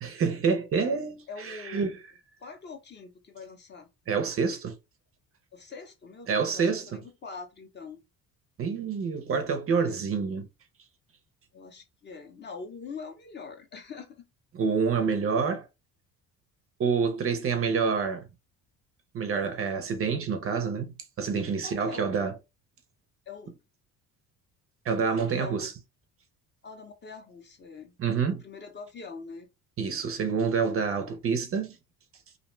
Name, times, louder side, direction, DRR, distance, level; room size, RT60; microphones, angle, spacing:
voice 1, 0.0-1.9 4.1-4.7 6.3-7.0 8.6-10.5 14.5-15.7 16.8-18.2 19.1-22.3 24.9-25.7 28.0-28.4 29.8-31.8, right 5 dB, 40° right, 0.4 m, -27 dB
voice 2, 1.3-2.0 2.4-3.9 5.5-8.0 9.8-10.0 11.5-14.3 21.6-22.1 23.3-23.5 25.1-25.7 26.6-27.9 28.3-29.5 31.0-31.1, left 4 dB, 30° left, 0.5 m, -43 dB
2.5 x 2.1 x 3.0 m
cardioid pair, 120°, 36 cm